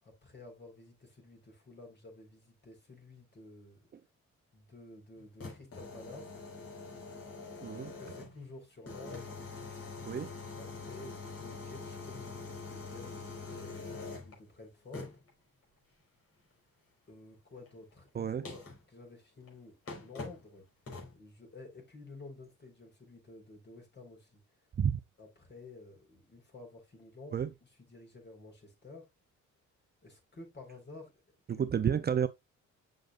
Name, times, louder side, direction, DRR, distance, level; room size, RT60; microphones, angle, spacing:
voice 1, 0.0-3.9 4.5-6.3 7.6-9.5 10.6-15.2 17.1-18.6 18.9-20.7 21.1-24.4 25.2-29.1 30.0-31.2 31.5-31.6, left 2 dB, 35° left, 4.5 m, -52 dB
sound 1, 5.2-8.4 8.9-14.4 14.9-15.3 17.7-17.8 18.5-18.8 19.5-19.6 19.9-20.5 20.9-21.2, left 3 dB, 50° left, 4.2 m, -44 dB
voice 2, 7.6-7.9 10.0-10.3 18.1-18.4 24.8-25.0 27.3-27.5 31.5-32.3, right 8 dB, 35° right, 0.5 m, -30 dB
7.7 x 6.5 x 2.5 m
cardioid pair, 90°, 30 cm